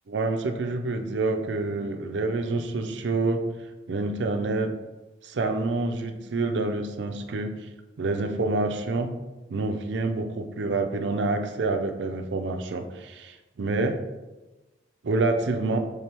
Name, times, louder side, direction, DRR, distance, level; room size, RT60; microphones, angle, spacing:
voice 1, 0.1-3.4 3.9-4.7 5.2-7.5 8.0-9.1 9.5-14.0 15.0-15.8, right 3 dB, 85° right, 6 dB, 0.5 m, -27 dB
4.5 x 3.3 x 3.3 m, 1.1 s
head